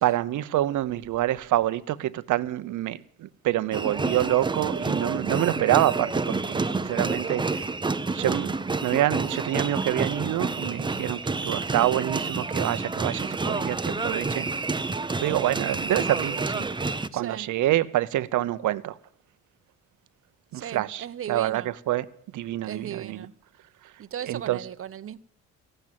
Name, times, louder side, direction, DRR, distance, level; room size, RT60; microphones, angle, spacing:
voice 1, 0.0-7.7 8.1-8.5 8.8-14.5 15.2-19.0 20.5-22.1 22.3-23.3 24.2-24.6, right 14 dB, 75° right, 0.9 m, -27 dB
sound 1, 3.7-17.1, right 3 dB, 15° right, 0.8 m, -29 dB
voice 2, 17.1-17.5 20.5-21.7 22.6-23.3 24.0-25.2, right 9 dB, 45° right, 0.9 m, -37 dB
15.5 x 12.0 x 7.6 m
cardioid pair, 90°, 30 cm